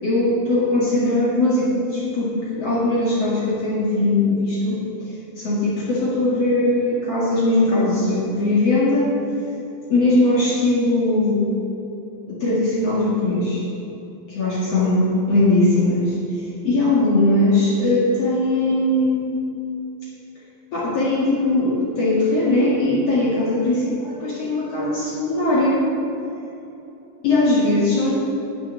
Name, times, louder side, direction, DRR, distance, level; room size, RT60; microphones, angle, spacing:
voice 1, 0.0-4.8 5.4-9.1 9.9-11.5 12.3-13.6 14.3-16.2 16.6-19.4 20.7-25.8 27.2-28.1, left 2 dB, 60° left, -7 dB, 1.6 m, -20 dB
12.0 x 6.7 x 8.2 m, 3.0 s
omnidirectional pair, 6.0 m